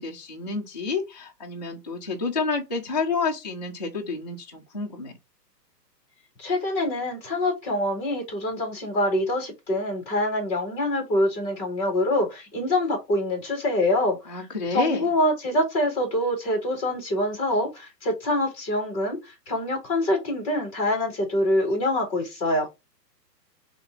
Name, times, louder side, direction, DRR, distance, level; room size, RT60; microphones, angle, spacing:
voice 1, 0.0-5.1 14.3-15.1, left 4 dB, 30° left, 0.4 m, -29 dB
voice 2, 6.4-14.5 14.7-22.7, left 1 dB, 15° left, 1.8 m, -25 dB
4.2 x 3.2 x 3.7 m
hypercardioid pair, 170°, 50 cm